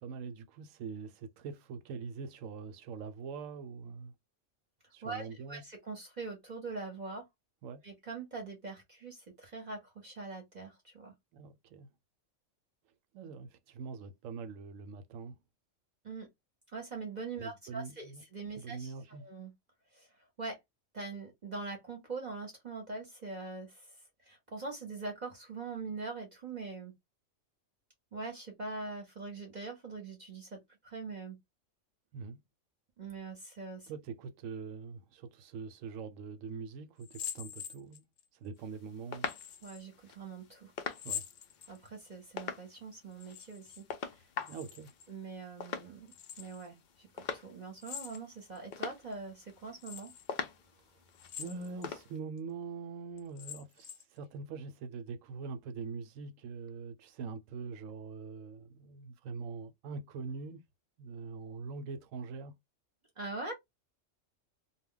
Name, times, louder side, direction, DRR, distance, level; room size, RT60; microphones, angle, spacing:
voice 1, 0.0-4.1 4.9-5.6 7.6-7.8 11.3-11.9 13.1-15.4 17.4-18.2 18.6-19.3 32.1-32.4 33.9-38.0 38.4-39.3 41.0-41.2 44.5-44.9 51.4-60.6 61.0-62.5, right 5 dB, 85° right, 1.0 m, -43 dB
voice 2, 5.0-7.3 7.8-11.1 16.0-16.3 16.7-19.5 19.9-20.6 20.9-26.9 28.1-31.4 33.0-33.9 39.6-40.7 41.7-44.3 45.1-50.1 63.2-63.5, right 3 dB, 40° right, 0.7 m, -43 dB
sound 1, 37.0-38.2 39.2-39.8 40.9-42.1 43.1-43.8 44.1-45.1 46.1-46.7 47.8-48.6 49.1-49.2 49.8-50.3 51.1-51.9 52.4-52.5 53.2-54.2, left 9 dB, 85° left, 1.0 m, -44 dB
sound 2, 38.6-52.2, left 6 dB, 65° left, 0.4 m, -45 dB
2.2 x 2.2 x 3.6 m
omnidirectional pair, 1.3 m